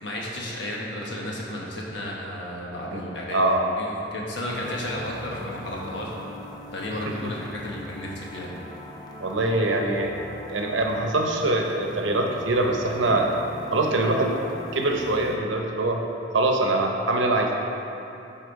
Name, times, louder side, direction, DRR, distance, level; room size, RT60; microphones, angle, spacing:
voice 1, 0.0-3.4 3.8-6.1 6.7-8.5, left 1 dB, 70° left, -3 dB, 1.2 m, -33 dB
voice 2, 3.3-3.7 7.0-7.1 9.2-10.2 10.5-13.3 13.7-14.3 14.7-16.0 16.3-17.5, right 2 dB, 90° right, 1 dB, 0.8 m, -23 dB
sound 1, 4.4-15.4, left 1 dB, 20° left, 0.6 m, -41 dB
8.5 x 4.3 x 4.0 m, 2.9 s
head